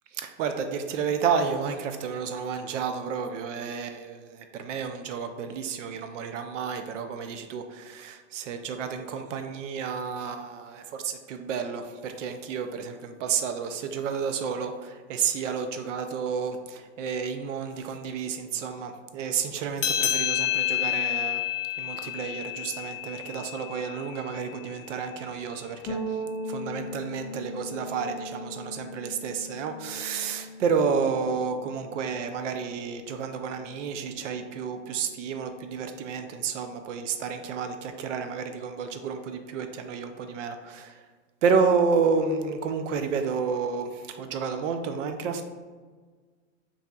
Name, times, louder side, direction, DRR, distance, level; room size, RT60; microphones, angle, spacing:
voice 1, 0.2-21.4 21.8-26.0 26.5-40.9 41.4-45.4, right 5 dB, 75° right, 7 dB, 0.5 m, -30 dB
sound 1, 19.8-24.7, left 12 dB, 75° left, 0.6 m, -29 dB
sound 2, 25.9-35.6, equal, 20° left, 0.4 m, -40 dB
5.3 x 2.7 x 2.3 m, 1.5 s
supercardioid pair, 150°, 37 cm